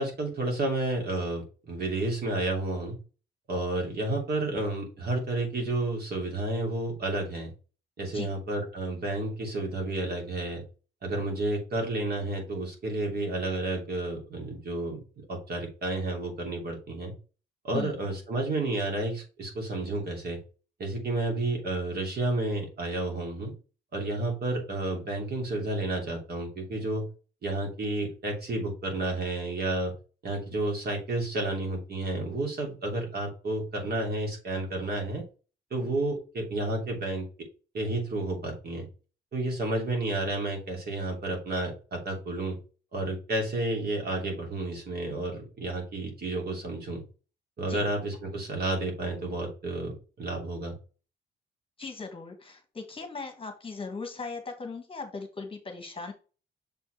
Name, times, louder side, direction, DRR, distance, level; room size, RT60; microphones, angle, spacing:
voice 1, 0.0-3.0 3.5-7.5 8.0-10.6 11.0-15.0 15.3-17.1 17.6-20.4 20.8-23.5 23.9-27.0 27.4-29.9 30.2-35.2 35.7-37.5 37.7-38.9 39.3-42.6 42.9-47.0 47.6-50.7, right 2 dB, 50° right, 1 dB, 2.9 m, -31 dB
voice 2, 51.8-56.1, left 4 dB, 25° left, 4 dB, 1.5 m, -38 dB
6.8 x 4.3 x 3.3 m, 0.35 s
cardioid pair, 90°, 20 cm